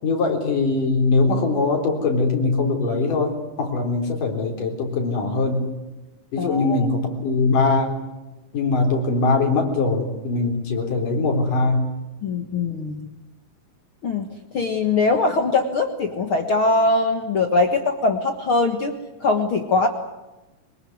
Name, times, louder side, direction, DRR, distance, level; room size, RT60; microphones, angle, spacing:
voice 1, 0.0-5.7 6.3-8.0 8.5-11.9, left 3 dB, 65° left, 3 dB, 5.4 m, -21 dB
voice 2, 6.4-6.9 12.2-13.1 14.0-19.9, left 3 dB, 50° left, 5 dB, 1.9 m, -22 dB
24.5 x 21.5 x 9.5 m, 1.1 s
omnidirectional pair, 4.0 m